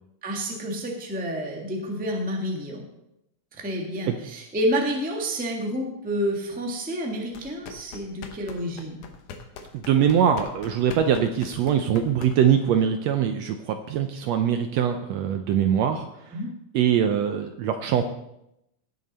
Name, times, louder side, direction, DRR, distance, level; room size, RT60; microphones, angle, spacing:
voice 1, 0.2-2.9 3.5-9.0 16.3-16.5, equal, 5° right, 0 dB, 0.8 m, -29 dB
sound 1, 7.3-12.7, left 5 dB, 80° left, 2.6 m, -42 dB
voice 2, 9.7-16.4 16.7-18.0, right 8 dB, 75° right, 7 dB, 1.6 m, -23 dB
17.5 x 6.7 x 4.2 m, 0.84 s
omnidirectional pair, 3.5 m